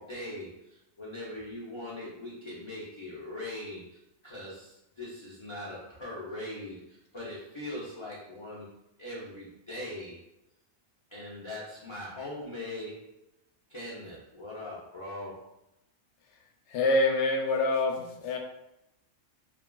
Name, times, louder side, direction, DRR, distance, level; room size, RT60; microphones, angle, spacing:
voice 1, 0.0-4.0 4.2-8.7 9.0-10.3 11.1-13.0 13.7-15.5, left 1 dB, 50° left, -7 dB, 0.3 m, -41 dB
voice 2, 16.7-18.4, left 2 dB, 70° left, 1 dB, 0.8 m, -26 dB
3.2 x 2.3 x 2.2 m, 0.84 s
omnidirectional pair, 1.3 m